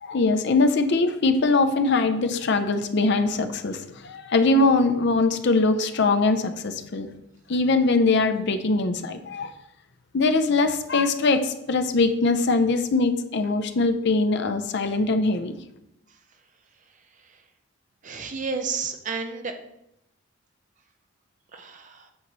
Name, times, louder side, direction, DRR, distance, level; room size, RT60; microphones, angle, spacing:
voice 1, 0.0-7.1 7.5-9.5 10.1-15.5, left 3 dB, 55° left, 8 dB, 0.5 m, -22 dB
voice 2, 18.0-19.6 21.5-22.1, right 5 dB, 35° right, 6 dB, 0.6 m, -32 dB
8.6 x 3.0 x 5.3 m, 0.82 s
head